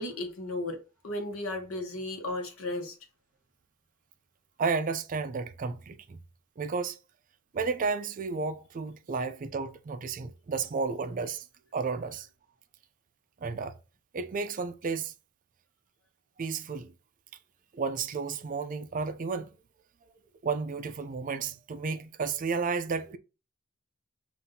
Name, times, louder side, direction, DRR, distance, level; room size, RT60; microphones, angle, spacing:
voice 1, 0.0-3.0, left 2 dB, 75° left, 1.0 m, -35 dB
voice 2, 4.6-6.2 6.6-7.0 7.5-11.4 11.7-12.3 13.4-13.8 14.1-15.1 16.4-16.9 17.7-19.5 20.4-23.2, right 4 dB, 40° right, 0.4 m, -32 dB
5.4 x 2.5 x 2.7 m
head